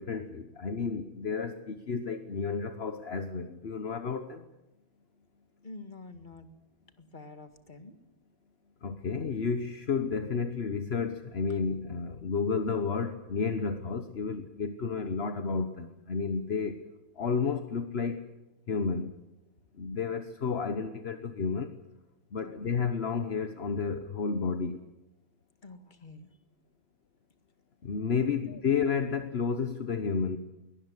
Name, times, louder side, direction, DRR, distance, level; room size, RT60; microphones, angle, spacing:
voice 1, 0.0-4.4 8.8-16.8 17.2-18.2 18.7-19.1 19.8-21.7 22.3-24.8 27.8-30.4, left 5 dB, 40° left, 9 dB, 1.0 m, -31 dB
voice 2, 5.6-6.5 7.0-7.9 22.4-22.5 25.6-26.3 28.2-28.6, left 2 dB, 25° left, 9 dB, 1.9 m, -47 dB
22.5 x 19.0 x 9.7 m, 0.96 s
omnidirectional pair, 2.2 m